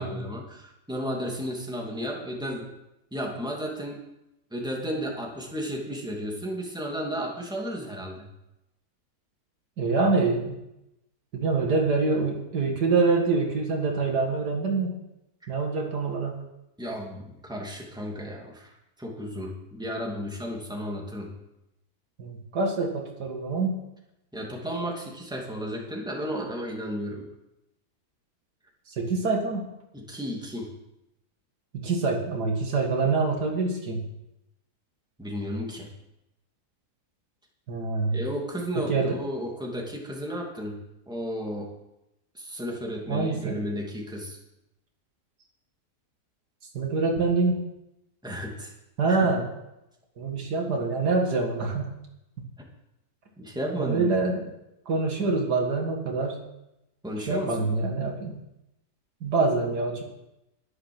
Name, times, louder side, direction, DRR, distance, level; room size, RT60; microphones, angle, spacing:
voice 1, 0.0-2.7 3.1-4.0 4.5-8.3 16.8-18.7 19.0-21.3 24.3-27.3 29.9-30.7 35.2-35.9 38.1-40.8 41.1-41.7 42.3-44.4 48.2-48.7 49.1-49.2 53.4-54.1 57.0-57.7, equal, 5° right, -1 dB, 2.4 m, -33 dB
voice 2, 9.8-10.6 11.3-14.9 15.5-16.4 22.2-23.8 29.0-29.7 31.7-34.0 37.7-38.2 38.8-39.2 43.1-43.6 46.7-47.6 49.0-49.4 50.2-51.9 53.8-54.5 54.9-56.4 57.3-58.4 59.2-60.0, right 3 dB, 80° right, 1 dB, 2.5 m, -25 dB
11.5 x 11.0 x 6.1 m, 0.89 s
omnidirectional pair, 1.7 m